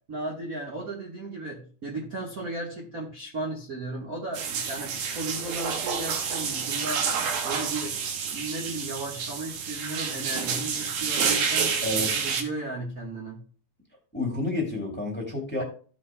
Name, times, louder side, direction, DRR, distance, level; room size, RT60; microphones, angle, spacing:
voice 1, 0.1-7.0 7.4-8.0 8.3-13.4, right 2 dB, 40° right, -2 dB, 1.3 m, -35 dB
sound 1, 4.3-12.4, right 6 dB, 80° right, 2.7 m, -29 dB
voice 2, 11.8-12.3 14.1-15.6, left 2 dB, 5° left, -1 dB, 1.9 m, -30 dB
16.0 x 5.8 x 2.2 m, 0.42 s
omnidirectional pair, 3.7 m